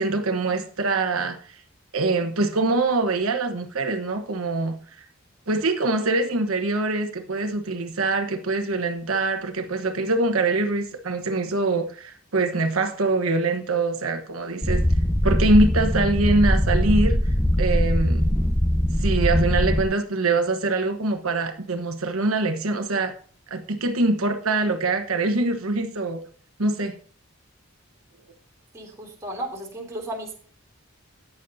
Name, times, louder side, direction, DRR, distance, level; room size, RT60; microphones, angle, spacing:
voice 1, 0.0-1.6 1.9-4.7 5.5-14.8 15.2-18.2 19.0-23.1 23.5-26.2 26.6-26.9, right 2 dB, 85° right, 5 dB, 1.2 m, -24 dB
sound 1, 14.6-19.8, equal, 10° left, 0.7 m, -21 dB
voice 2, 28.7-30.3, right 1 dB, 15° right, -2 dB, 3.2 m, -34 dB
14.0 x 9.5 x 2.7 m, 0.44 s
head